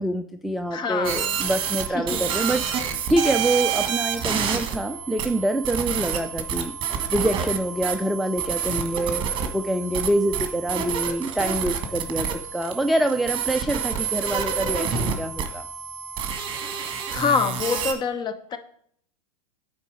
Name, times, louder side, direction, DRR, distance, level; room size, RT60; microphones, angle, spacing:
voice 1, 0.0-6.7 7.1-12.3 12.5-15.6, right 1 dB, ahead, 6 dB, 0.3 m, -26 dB
sound 1, 0.6-17.9, left 2 dB, 80° left, 1.2 m, -44 dB
voice 2, 0.7-1.4 1.9-2.2 17.1-18.6, left 5 dB, 25° left, 10 dB, 0.8 m, -26 dB
sound 2, 1.0-17.9, right 8 dB, 30° right, 1.4 m, -28 dB
9.0 x 3.9 x 4.9 m, 0.66 s
figure-of-eight pair, 90°, 18 cm